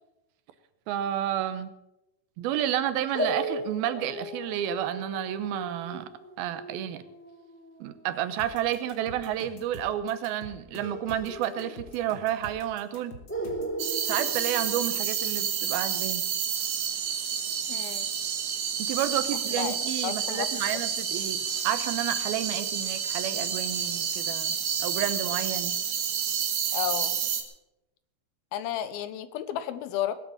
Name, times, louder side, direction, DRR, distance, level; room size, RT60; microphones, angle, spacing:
voice 1, 0.9-1.7 2.4-6.1 6.4-7.0 7.8-13.1 14.0-16.2 18.8-24.5 24.8-25.8, right 11 dB, 80° right, 11 dB, 2.8 m, -31 dB
sound 1, 3.1-8.6 10.8-12.3 12.5-12.6 13.3-15.5, right 1 dB, 5° left, 1.8 m, -37 dB
sound 2, 8.4-13.8, equal, 40° left, 2.2 m, -46 dB
sound 3, 13.8-27.4, right 8 dB, 60° right, 2.6 m, -29 dB
voice 2, 17.7-18.1 19.5-20.5 26.7-27.1 28.5-30.2, left 11 dB, 75° left, 13 dB, 2.7 m, -32 dB
19.5 x 8.5 x 7.2 m, 0.94 s
omnidirectional pair, 4.4 m